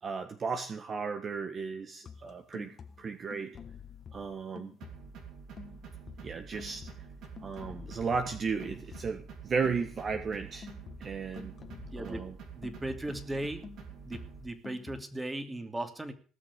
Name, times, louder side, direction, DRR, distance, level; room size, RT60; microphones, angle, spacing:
voice 1, 0.0-3.6 4.1-4.7 6.2-6.9 7.4-10.7 11.0-11.5 12.0-12.4, right 5 dB, 40° right, 7 dB, 1.5 m, -35 dB
sound 1, 2.1-5.3 5.6-9.4 9.6-13.3 13.6-15.0, left 6 dB, 45° left, 1.7 m, -49 dB
sound 2, 4.8-14.5, right 6 dB, 65° right, 3.2 m, -48 dB
voice 2, 11.9-12.3 12.6-13.7 14.0-16.1, right 1 dB, 15° right, 8 dB, 2.6 m, -37 dB
18.5 x 6.3 x 8.3 m, 0.41 s
supercardioid pair, 75°, 0 cm